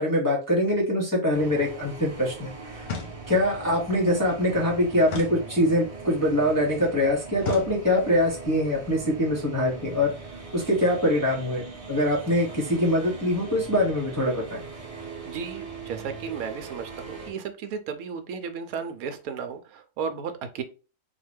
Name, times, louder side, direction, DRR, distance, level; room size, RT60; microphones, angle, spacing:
voice 1, 0.0-2.8 3.3-10.1 10.5-11.6 11.9-14.7, left 1 dB, 20° left, -3 dB, 0.5 m, -24 dB
sound 1, 1.3-17.3, right 4 dB, 30° right, 0.9 m, -40 dB
sound 2, 2.8-3.6 5.0-6.0 7.4-8.2, left 4 dB, 55° left, 0.7 m, -37 dB
voice 2, 15.3-20.6, right 6 dB, 80° right, 8 dB, 1.1 m, -34 dB
3.9 x 2.2 x 3.4 m, 0.34 s
omnidirectional pair, 1.5 m